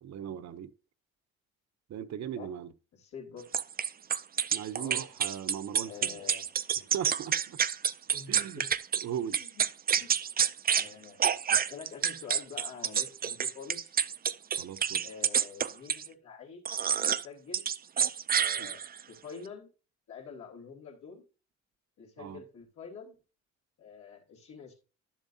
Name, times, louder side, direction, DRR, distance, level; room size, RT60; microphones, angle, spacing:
voice 1, 0.0-0.7 1.9-2.7 4.5-6.1 6.9-7.6 8.3-8.6 9.0-9.4 14.6-15.0 18.6-18.7 22.2-22.4, right 9 dB, 60° right, 0.8 m, -38 dB
voice 2, 2.9-3.5 4.8-5.0 5.8-6.4 8.1-8.7 9.3-9.6 10.0-10.2 10.8-14.0 15.0-16.6 16.9-17.7 18.3-18.8 19.1-19.7 20.1-21.2 22.0-23.1 23.8-24.7, left 6 dB, 75° left, 2.9 m, -47 dB
sound 1, 3.5-9.0 9.3-10.9 11.2-16.1 16.6-17.2 17.5-19.0, right 8 dB, 30° right, 0.4 m, -28 dB
11.5 x 7.2 x 2.7 m
cardioid pair, 90°, 30 cm